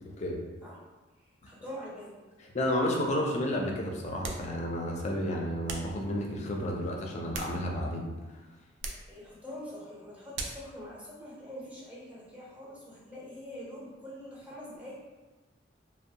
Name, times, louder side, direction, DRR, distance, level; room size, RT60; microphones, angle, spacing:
voice 1, 1.1-2.2 8.9-14.9, equal, 5° right, -7 dB, 0.6 m, -44 dB
voice 2, 2.5-8.1, left 1 dB, 35° left, 0 dB, 0.4 m, -31 dB
sound 1, 4.2-4.5 5.7-6.0 7.0-7.9 8.8-9.1 10.3-10.7, right 3 dB, 65° right, 0.3 m, -39 dB
2.6 x 2.0 x 2.7 m, 1.2 s
head